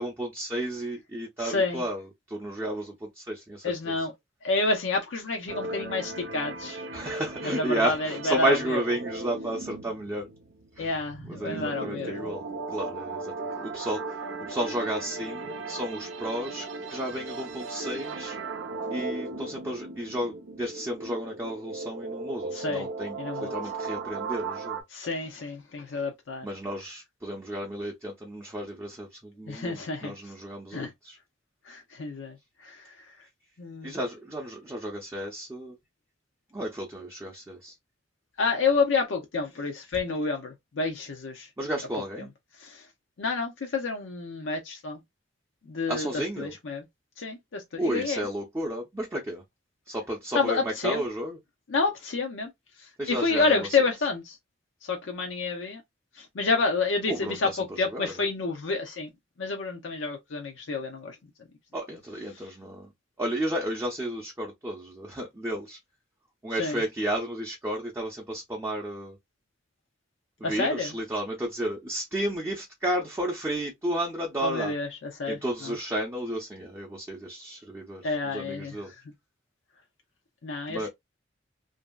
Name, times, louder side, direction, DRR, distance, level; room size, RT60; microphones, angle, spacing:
voice 1, 0.0-3.9 6.9-10.3 10.8-10.9 11.3-12.4 12.7-13.3 13.6-14.2 14.5-18.4 18.9-24.8 26.4-31.2 33.8-35.7 36.5-37.7 41.6-42.3 45.9-46.5 47.8-49.4 49.9-51.4 53.0-53.7 57.1-58.1 61.7-62.9 63.2-65.8 66.4-69.2 70.4-74.7 75.3-78.9 80.7-80.9, right 1 dB, 15° right, 0.5 m, -32 dB
voice 2, 1.4-1.8 3.6-4.1 4.4-6.8 7.4-8.8 10.8-12.2 22.5-22.9 23.2-23.5 24.9-26.5 29.5-30.3 30.7-30.9 31.6-33.1 33.6-34.0 38.4-41.5 42.6-42.9 43.2-45.0 45.7-46.1 46.4-46.8 47.2-48.3 50.3-51.0 51.7-52.5 52.8-54.4 54.8-55.8 56.1-59.1 59.4-61.2 62.3-62.5 66.5-66.8 70.4-70.9 74.4-75.7 78.0-79.0 80.4-80.9, left 3 dB, 80° left, 0.6 m, -29 dB
sound 1, 5.5-24.8, right 3 dB, 80° right, 0.6 m, -37 dB
2.9 x 2.6 x 2.2 m
head